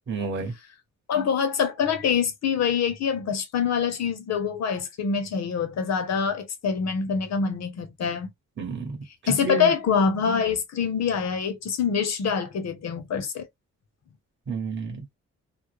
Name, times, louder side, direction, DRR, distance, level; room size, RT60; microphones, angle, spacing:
voice 1, 0.1-0.5 8.6-9.7 14.5-15.2, right 4 dB, 40° right, 1.0 m, -31 dB
voice 2, 1.1-8.3 9.3-13.5, left 6 dB, 65° left, 0.7 m, -25 dB
2.4 x 2.0 x 2.9 m
wide cardioid pair, 120°, 29 cm